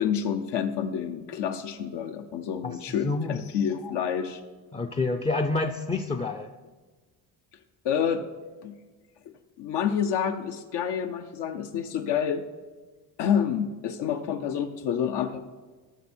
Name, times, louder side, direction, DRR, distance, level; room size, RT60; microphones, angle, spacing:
voice 1, 0.0-4.4 7.8-8.2 8.6-8.7 9.6-12.4 13.2-15.5, left 8 dB, 80° left, 6 dB, 0.8 m, -28 dB
voice 2, 3.0-3.4 4.7-6.5, left 3 dB, 15° left, 4 dB, 0.4 m, -28 dB
13.5 x 6.1 x 4.4 m, 1.3 s
cardioid pair, 120°, 40 cm